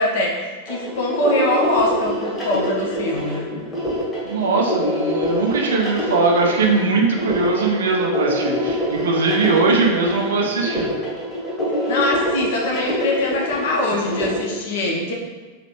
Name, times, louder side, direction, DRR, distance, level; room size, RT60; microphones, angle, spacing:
voice 1, 0.0-3.5 11.9-15.1, left 1 dB, 55° left, -1 dB, 0.8 m, -22 dB
sound 1, 0.7-14.4, equal, 15° left, 1.2 m, -25 dB
voice 2, 4.2-10.9, right 3 dB, 65° right, 1 dB, 0.6 m, -20 dB
4.0 x 3.0 x 2.9 m, 1.4 s
figure-of-eight pair, 90°, 0 cm